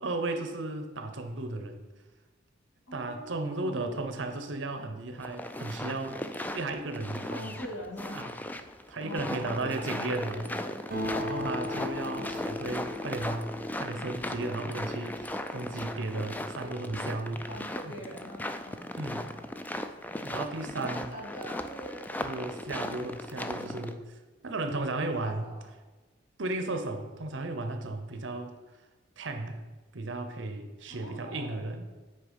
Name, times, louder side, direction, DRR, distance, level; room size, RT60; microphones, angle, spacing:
voice 1, 0.0-1.8 2.9-6.2 6.5-7.5 8.1-8.3 8.9-10.5 11.2-13.5 13.7-17.4 17.8-17.9 19.0-19.3 20.2-21.1 22.2-24.0 24.4-25.5 26.4-28.6 29.2-29.6 29.9-31.9, right 2 dB, 65° right, 7 dB, 0.8 m, -35 dB
voice 2, 2.9-4.0 7.1-8.2 9.0-10.6 11.4-12.3 16.6-16.7 17.0-19.3 20.7-22.0 25.1-25.6 30.9-31.6, equal, 85° left, -4 dB, 2.6 m, -44 dB
sound 1, 5.2-23.9, left 1 dB, 10° left, 0.3 m, -37 dB
Acoustic guitar, 10.9-14.7, left 1 dB, 50° right, 1.3 m, -37 dB
9.0 x 4.4 x 5.2 m, 1.3 s
head